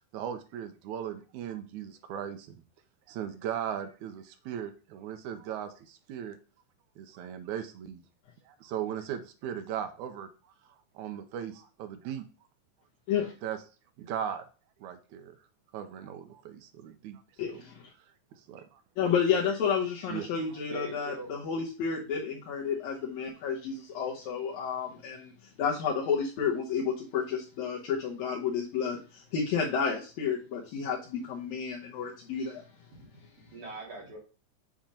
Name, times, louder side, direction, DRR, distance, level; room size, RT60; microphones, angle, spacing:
voice 1, 0.1-2.6 3.1-6.4 7.0-8.0 8.5-10.3 11.0-12.3 13.4-13.6 14.0-14.4 14.8-15.4 15.7-17.2 17.5-17.6 18.3-18.8 20.1-20.3, right 9 dB, 80° right, 8 dB, 1.9 m, -38 dB
voice 2, 17.4-17.8 19.0-32.6, left 6 dB, 70° left, -4 dB, 1.9 m, -31 dB
voice 3, 20.7-21.5 32.9-33.1 33.5-34.2, right 3 dB, 50° right, -3 dB, 2.3 m, -42 dB
7.3 x 2.9 x 5.1 m, 0.36 s
omnidirectional pair, 3.8 m